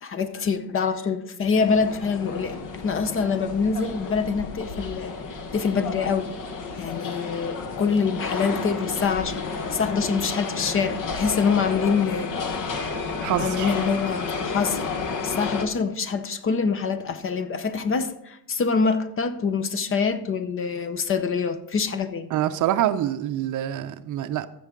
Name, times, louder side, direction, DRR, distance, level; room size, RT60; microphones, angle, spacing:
voice 1, 0.0-2.6 2.8-5.1 5.5-6.3 6.8-12.3 13.4-14.9 15.2-22.3, left 5 dB, 30° left, 0.7 m, -25 dB
sound 1, 1.5-15.7, left 4 dB, 50° left, 1.4 m, -31 dB
voice 2, 13.2-13.8 22.3-24.5, right 12 dB, 50° right, 0.6 m, -25 dB
14.5 x 6.2 x 3.8 m
cardioid pair, 115°, 40 cm